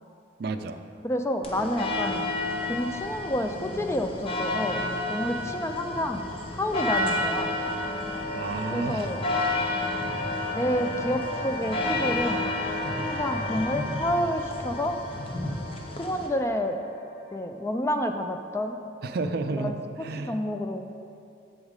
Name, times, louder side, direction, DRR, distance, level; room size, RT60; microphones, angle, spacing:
voice 1, 0.4-0.8 8.3-9.1 19.0-19.7 20.0-20.3, right 3 dB, 55° right, 9 dB, 0.4 m, -31 dB
voice 2, 1.0-2.3 2.6-4.8 5.1-7.6 8.7-9.3 10.5-12.4 13.0-15.0 16.0-16.8 17.3-18.8 19.5-20.9, left 1 dB, 15° left, 5 dB, 0.3 m, -29 dB
sound 1, 1.4-16.3, left 2 dB, 30° left, 0.7 m, -31 dB
sound 2, 6.2-17.3, left 1 dB, 50° left, 2.0 m, -36 dB
8.1 x 7.1 x 3.7 m, 2.6 s
head